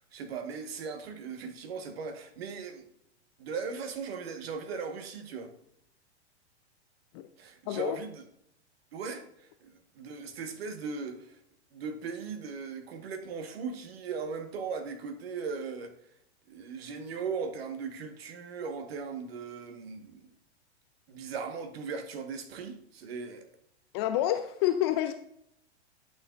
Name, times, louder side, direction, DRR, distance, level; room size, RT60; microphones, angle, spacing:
voice 1, 0.1-2.8 3.4-5.5 7.4-8.2 8.9-11.4 11.7-15.9 16.5-20.3 21.1-23.4, right 5 dB, 60° right, 1.4 m, -38 dB
voice 2, 7.7-8.0 23.9-25.1, left 12 dB, 25° left, 0.3 m, -28 dB
11.5 x 6.6 x 2.5 m
figure-of-eight pair, 110°, 35 cm